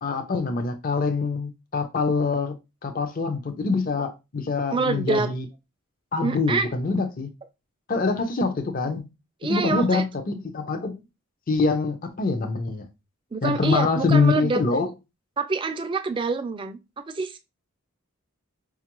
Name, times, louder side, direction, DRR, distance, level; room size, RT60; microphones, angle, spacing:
voice 1, 0.0-2.5 2.8-5.4 6.1-7.3 7.9-9.1 9.5-11.0 11.5-12.9 13.4-14.9, left 4 dB, 40° left, 0.5 m, -24 dB
voice 2, 4.7-5.3 6.2-6.7 9.4-10.0 13.3-14.6 15.4-17.4, right 3 dB, 20° right, 0.3 m, -26 dB
5.2 x 2.3 x 2.9 m
head